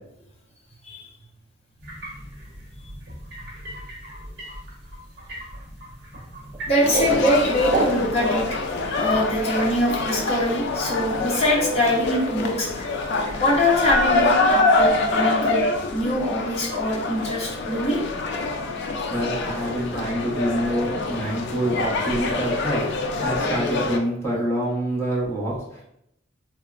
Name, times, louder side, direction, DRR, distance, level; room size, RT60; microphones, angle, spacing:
sound 1, 1.8-14.1, equal, 60° right, 0.9 m, -41 dB
sound 2, 6.4-8.4, right 2 dB, 25° right, 0.3 m, -27 dB
voice 1, 6.7-8.6 9.0-12.7 13.4-15.6 15.9-18.0, left 1 dB, 35° left, -4 dB, 0.8 m, -23 dB
sound 3, 6.8-24.0, left 3 dB, 60° left, 0.3 m, -25 dB
voice 2, 19.1-25.8, right 1 dB, 15° left, -8 dB, 1.1 m, -26 dB
3.4 x 2.1 x 2.4 m, 0.77 s
head